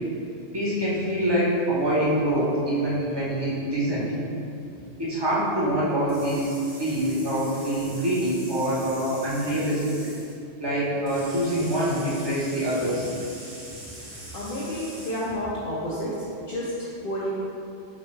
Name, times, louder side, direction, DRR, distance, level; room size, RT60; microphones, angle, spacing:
voice 1, 0.5-4.1 5.0-9.9 10.6-13.1, right 1 dB, 25° right, -8 dB, 0.8 m, -25 dB
sound 1, 6.1-10.3 11.1-15.4, right 1 dB, 80° right, 1.8 m, -43 dB
voice 2, 14.3-17.3, equal, 60° left, -7 dB, 0.7 m, -30 dB
6.3 x 2.2 x 3.2 m, 2.7 s
omnidirectional pair, 1.2 m